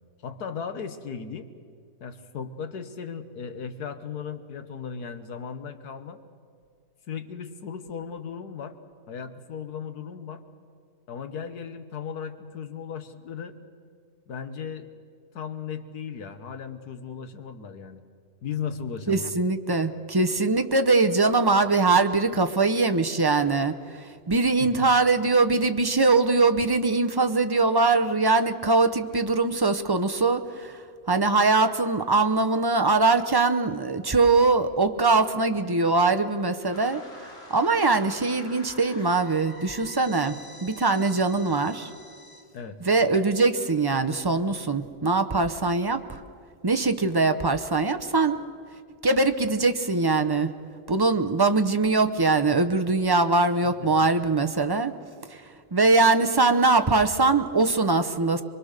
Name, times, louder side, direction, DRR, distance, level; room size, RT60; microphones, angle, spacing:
voice 1, 0.2-1.5 2.0-6.2 7.1-8.8 9.1-10.4 11.1-13.5 14.3-14.9 15.3-18.0 18.4-19.3 24.6-24.7 42.5-42.8 53.8-53.9, left 6 dB, 80° left, 9 dB, 1.7 m, -36 dB
voice 2, 19.1-30.8 31.1-41.9 42.8-46.2 46.6-48.4 49.0-50.5 50.9-54.9 55.3-55.4 55.7-58.4, right 3 dB, 25° right, 7 dB, 0.5 m, -22 dB
sound 1, 36.7-42.4, left 1 dB, 40° left, 3.7 m, -46 dB
23.5 x 23.5 x 6.6 m, 2.2 s
omnidirectional pair, 1.6 m